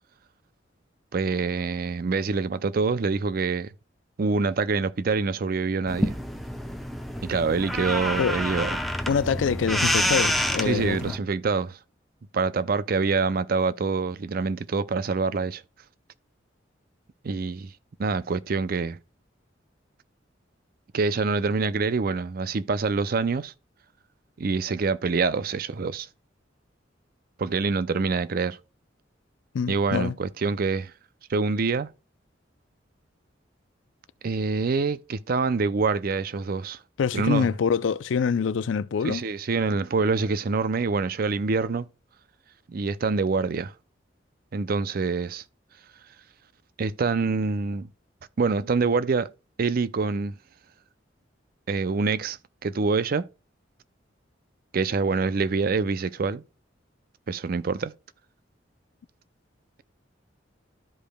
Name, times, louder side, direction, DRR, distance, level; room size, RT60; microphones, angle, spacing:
voice 1, 1.1-3.7 4.2-6.1 7.2-8.8 10.6-11.8 12.3-15.6 17.2-17.7 18.0-19.0 20.9-23.5 24.4-26.1 27.4-28.6 29.7-30.9 31.3-31.9 34.2-36.8 37.1-37.5 39.0-41.9 42.7-43.7 44.5-45.4 46.8-47.9 48.4-49.3 49.6-50.3 51.7-53.2 54.7-56.4 57.3-57.9, right 4 dB, 50° right, 0.5 m, -25 dB
sound 1, 5.9-11.2, equal, ahead, 0.7 m, -28 dB
voice 2, 9.1-11.1 29.5-30.1 37.0-39.2, left 6 dB, 85° left, 0.4 m, -25 dB
13.0 x 5.1 x 2.2 m
head